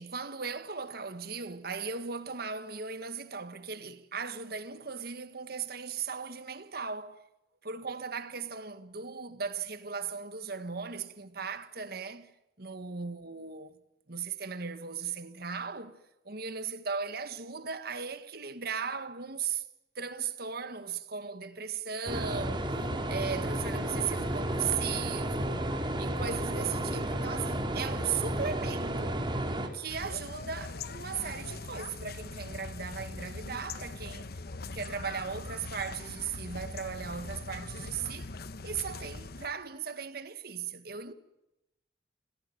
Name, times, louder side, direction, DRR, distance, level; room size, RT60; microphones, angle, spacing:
voice 1, 0.0-7.2 7.6-12.3 12.6-13.7 14.1-16.0 16.3-19.7 20.0-22.8 23.1-25.7 26.0-29.2 29.7-34.3 34.7-38.3 38.6-41.1, right 6 dB, 60° right, 1.7 m, -37 dB
sound 1, 22.1-29.7, right 1 dB, 25° right, 3.2 m, -32 dB
sound 2, 29.9-39.5, left 3 dB, 60° left, 1.2 m, -41 dB
29.0 x 18.0 x 9.2 m
head